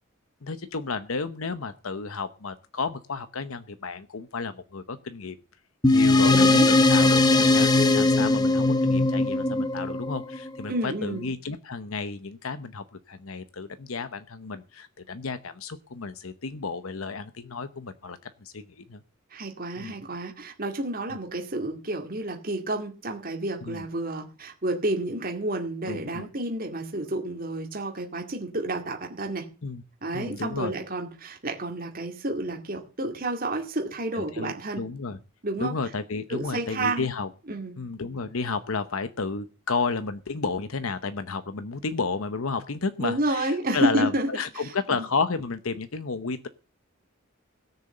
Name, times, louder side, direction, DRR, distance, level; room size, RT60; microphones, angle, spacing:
voice 1, 0.4-5.4 5.9-19.0 19.8-19.9 23.7-23.8 25.9-26.3 29.6-29.8 30.1-30.7 34.1-35.2 35.6-37.3 37.8-46.5, left 4 dB, 80° left, 11 dB, 0.9 m, -32 dB
sound 1, 5.8-10.6, left 2 dB, 20° left, 1.0 m, -20 dB
voice 2, 6.2-6.7 10.7-11.3 19.3-29.5 30.0-34.8 35.4-35.8 36.3-37.1 37.5-37.7 43.0-44.7 45.0-45.1, right 1 dB, 45° right, 2 dB, 2.1 m, -30 dB
17.0 x 6.9 x 7.8 m, 0.35 s
head